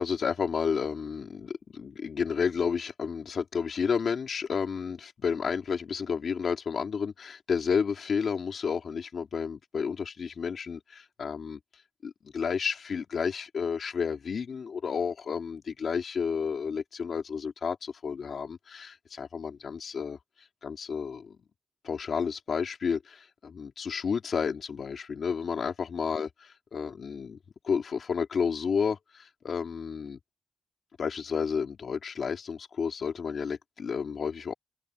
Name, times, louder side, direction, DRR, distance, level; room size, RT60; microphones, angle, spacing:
voice 1, 0.0-11.6 12.0-21.4 21.8-27.4 27.6-30.2 31.0-34.5, left 6 dB, 75° left, 2.5 m, -31 dB
wide cardioid pair, 95°, 0 cm